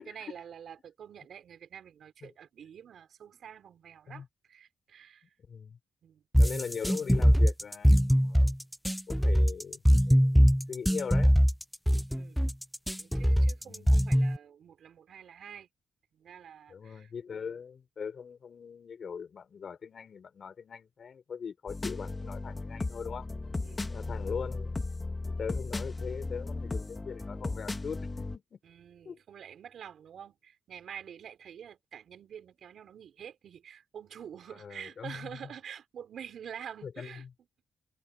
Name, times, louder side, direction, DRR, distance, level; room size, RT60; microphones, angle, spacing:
voice 1, 0.0-5.3 6.0-6.2 12.1-12.4 13.0-15.7 16.1-17.6 23.6-23.9 28.6-37.3, right 8 dB, 70° right, 5.7 m, -47 dB
voice 2, 5.5-5.8 6.4-8.5 9.1-11.4 13.6-13.9 16.7-23.3 23.9-24.8 25.3-28.6 29.0-29.2 34.6-35.3 36.8-37.3, left 6 dB, 55° left, 5.9 m, -41 dB
sound 1, 6.3-14.4, equal, ahead, 0.6 m, -22 dB
sound 2, 21.7-28.4, left 3 dB, 25° left, 2.2 m, -36 dB
cardioid pair, 105°, 0 cm